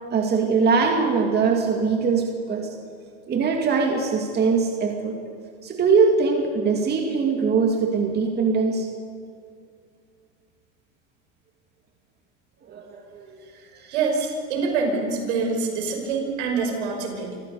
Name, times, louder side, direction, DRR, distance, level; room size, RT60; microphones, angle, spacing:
voice 1, 0.1-2.7 3.3-5.2 5.6-8.9 12.7-13.4 13.7-13.9 16.0-16.1, right 5 dB, 30° right, 2 dB, 2.5 m, -22 dB
voice 2, 13.9-17.4, right 4 dB, 80° right, 2 dB, 5.9 m, -25 dB
26.0 x 15.5 x 7.0 m, 2.3 s
supercardioid pair, 125°, 35 cm